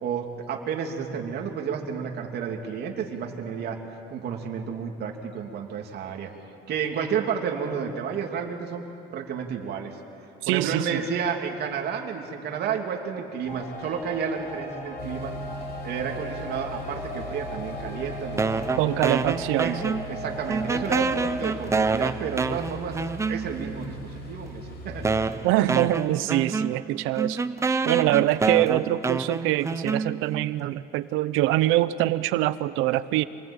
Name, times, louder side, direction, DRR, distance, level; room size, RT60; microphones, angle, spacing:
voice 1, 0.0-3.8 4.1-6.3 6.7-8.8 9.1-9.9 10.5-15.3 15.8-18.5 19.0-19.2 19.6-19.7 20.1-23.0 23.3-25.1, right 7 dB, 55° right, 2 dB, 2.9 m, -31 dB
voice 2, 10.4-11.0 18.8-19.9 25.4-27.4 27.9-33.2, right 15 dB, 90° right, 15 dB, 0.9 m, -24 dB
sound 1, 13.4-21.6, left 1 dB, 35° left, 6.1 m, -37 dB
sound 2, 15.0-25.3, equal, 55° left, 5.1 m, -40 dB
sound 3, 18.4-20.2 20.5-23.7 24.5-24.6 25.0-30.4, right 4 dB, 15° right, 0.6 m, -27 dB
27.0 x 20.5 x 8.9 m, 2.8 s
cardioid pair, 145°, 20 cm